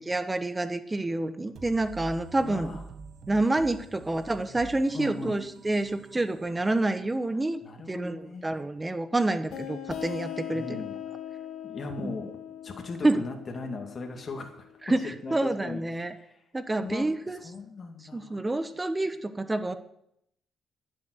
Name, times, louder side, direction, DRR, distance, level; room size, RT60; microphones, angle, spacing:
voice 1, 0.1-2.8 3.3-7.6 7.9-10.8 12.0-12.1 13.0-13.2 14.9-16.1 16.5-17.4 18.1-19.7, right 2 dB, 20° right, 11 dB, 1.1 m, -28 dB
sound 1, 1.5-7.2, right 5 dB, 65° right, 1.6 m, -47 dB
voice 2, 2.4-2.8 4.9-5.4 7.6-8.5 10.5-11.0 11.6-12.3 12.6-14.7 15.0-16.4 16.8-18.5, left 3 dB, 40° left, 3 dB, 2.3 m, -38 dB
sound 2, 9.5-14.9, left 10 dB, 75° left, 1.8 m, -40 dB
10.5 x 7.8 x 9.7 m, 0.75 s
cardioid pair, 90°, 0 cm